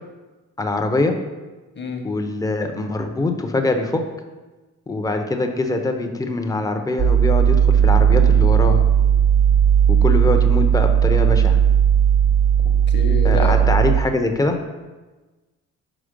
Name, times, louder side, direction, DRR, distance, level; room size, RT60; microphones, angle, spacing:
voice 1, 0.6-1.2 2.0-4.0 4.9-8.8 9.9-11.6 13.2-14.6, left 2 dB, 10° left, 5 dB, 0.6 m, -23 dB
voice 2, 1.7-2.0 12.6-13.6, left 4 dB, 35° left, 4 dB, 1.0 m, -28 dB
sound 1, 7.0-14.0, right 8 dB, 30° right, 0.4 m, -16 dB
5.1 x 4.1 x 5.1 m, 1.2 s
cardioid pair, 90°, 30 cm